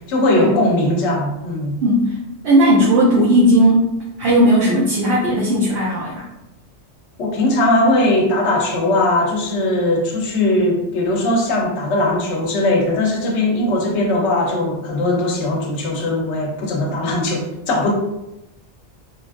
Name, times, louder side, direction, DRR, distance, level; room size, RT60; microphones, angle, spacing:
voice 1, 0.1-1.8 7.2-17.9, left 1 dB, 75° left, 0 dB, 0.9 m, -19 dB
voice 2, 1.8-2.2 2.4-3.8 4.2-6.3, equal, 60° right, -6 dB, 0.9 m, -15 dB
3.1 x 2.3 x 2.4 m, 0.91 s
omnidirectional pair, 1.2 m